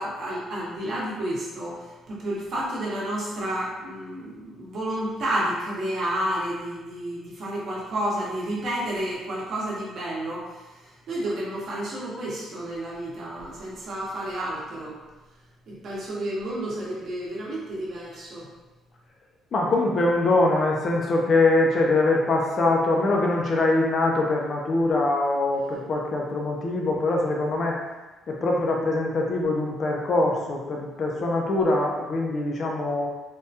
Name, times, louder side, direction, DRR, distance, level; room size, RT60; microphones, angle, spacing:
voice 1, 0.0-10.5 11.1-15.0 15.7-18.5, right 1 dB, 45° right, -5 dB, 0.8 m, -30 dB
voice 2, 19.5-27.8 28.3-33.1, left 2 dB, 35° left, -1 dB, 0.4 m, -23 dB
3.4 x 2.1 x 2.7 m, 1.1 s
cardioid pair, 170°, 0 cm